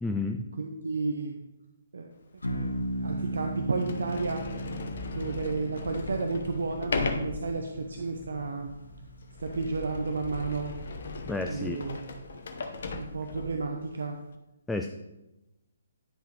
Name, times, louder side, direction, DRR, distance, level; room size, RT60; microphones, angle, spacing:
voice 1, 0.0-0.5 11.3-11.8 14.7-14.9, left 3 dB, 5° left, 4 dB, 0.3 m, -31 dB
voice 2, 0.6-1.3 1.9-2.1 2.5-4.4 5.1-8.7 9.4-10.7 11.5-12.0 12.9-14.2, right 3 dB, 60° right, 3 dB, 0.7 m, -32 dB
sound 1, 2.4-13.0, right 1 dB, 75° left, 1.0 m, -39 dB
Sliding door, 2.4-2.5 3.2-3.3 3.8-13.7, left 3 dB, 50° left, 0.8 m, -37 dB
9.9 x 5.6 x 3.3 m, 0.97 s
figure-of-eight pair, 135°, 0 cm